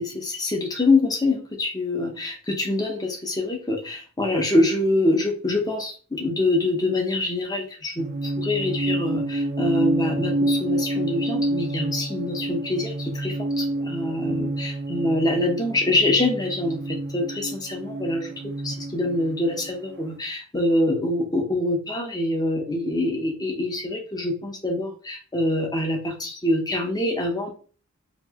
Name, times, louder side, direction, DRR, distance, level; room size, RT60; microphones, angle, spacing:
voice 1, 0.0-18.3 18.6-27.5, left 2 dB, 15° left, 1 dB, 0.8 m, -25 dB
sound 1, 8.0-20.0, right 1 dB, 45° right, 0.5 m, -28 dB
4.3 x 2.6 x 2.8 m, 0.40 s
head